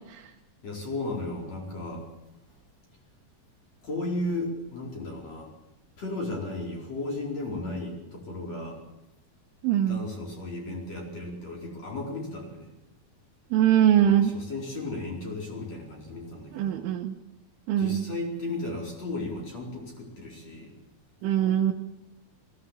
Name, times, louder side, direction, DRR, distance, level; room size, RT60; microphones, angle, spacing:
voice 1, 0.6-2.1 3.8-5.5 6.0-8.8 9.9-12.7 14.0-16.9 17.8-20.7, left 2 dB, 35° left, 0 dB, 5.6 m, -35 dB
voice 2, 9.6-10.0 13.5-14.3 16.5-17.2 17.7-18.1 21.2-21.7, right 10 dB, 80° right, 1 dB, 3.4 m, -22 dB
21.0 x 17.5 x 8.5 m, 0.94 s
omnidirectional pair, 5.8 m